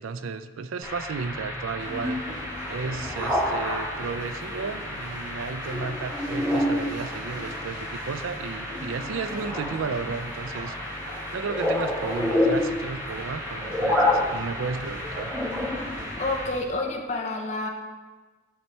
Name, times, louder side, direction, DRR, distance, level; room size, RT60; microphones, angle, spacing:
voice 1, 0.0-2.2 2.7-10.8 11.3-15.3, right 5 dB, 85° right, 11 dB, 0.4 m, -33 dB
sound 1, 0.8-16.5, left 1 dB, 15° right, 1.3 m, -29 dB
sound 2, 1.8-16.6, equal, 65° right, 2.2 m, -45 dB
voice 2, 16.2-17.7, left 2 dB, 35° left, 1 dB, 0.8 m, -29 dB
12.0 x 4.4 x 3.2 m, 1.3 s
head